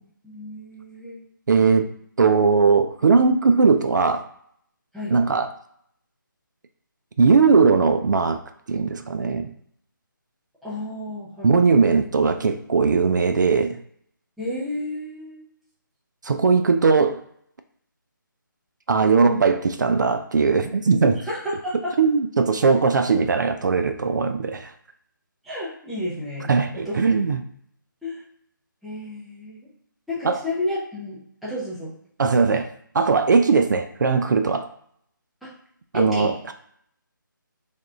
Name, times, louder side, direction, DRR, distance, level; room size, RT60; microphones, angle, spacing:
voice 1, 0.2-1.2 4.9-5.2 10.6-11.8 14.4-15.4 19.1-19.5 21.1-22.0 25.4-27.0 28.0-28.2 28.8-29.7 30.1-31.9 35.4-35.5 35.9-36.3, left 1 dB, ahead, -10 dB, 0.5 m, -31 dB
voice 2, 1.5-1.9 2.2-4.2 5.1-5.5 7.2-8.4 8.7-9.5 11.4-13.8 16.2-17.2 18.9-21.2 22.0-24.7 26.5-27.4 30.2-30.4 32.2-32.7 32.9-34.7 35.9-36.5, right 4 dB, 60° right, 9 dB, 0.4 m, -19 dB
3.4 x 2.3 x 3.7 m, 0.66 s
figure-of-eight pair, 160°, 11 cm